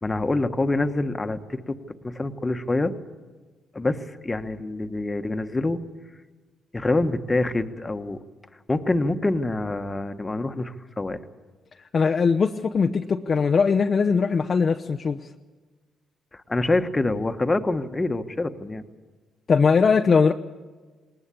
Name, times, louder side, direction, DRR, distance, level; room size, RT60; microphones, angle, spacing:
voice 1, 0.0-1.8 2.0-2.9 3.7-5.8 6.7-8.2 8.7-11.2 16.3-18.8, left 2 dB, 20° left, 8 dB, 1.3 m, -26 dB
voice 2, 11.9-15.2 19.5-20.3, left 5 dB, 40° left, 4 dB, 0.8 m, -20 dB
19.5 x 19.5 x 8.5 m, 1.3 s
cardioid pair, 90°, 0 cm